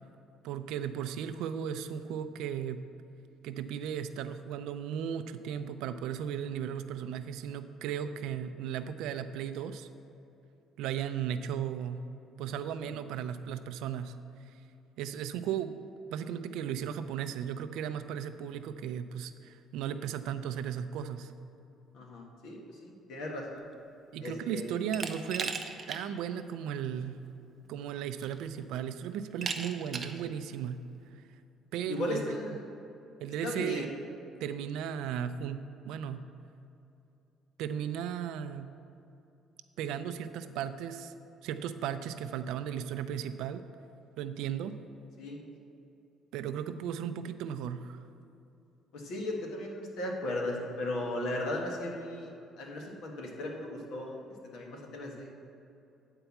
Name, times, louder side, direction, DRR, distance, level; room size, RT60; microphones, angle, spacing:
voice 1, 0.4-2.8 3.4-9.9 10.8-12.0 12.4-14.1 15.0-15.8 16.1-21.3 24.1-25.6 25.9-27.2 27.7-30.8 31.1-31.2 31.7-32.4 33.2-33.9 34.4-36.2 37.6-38.7 39.8-41.1 41.4-43.6 44.2-44.8 46.3-48.0, right 9 dB, 85° right, 10 dB, 0.4 m, -36 dB
voice 2, 21.9-23.7 24.2-24.7 31.9-32.7 33.4-33.9 45.2-45.5 48.9-52.3 52.6-54.2 54.5-55.3, left 1 dB, 70° left, 0 dB, 1.6 m, -36 dB
Glass, 24.9-26.0 26.4-26.5 27.7-27.8 28.2-28.6 29.4-30.2, right 5 dB, 30° right, 0.5 m, -37 dB
9.0 x 4.5 x 7.1 m, 2.8 s
cardioid pair, 155°, 0 cm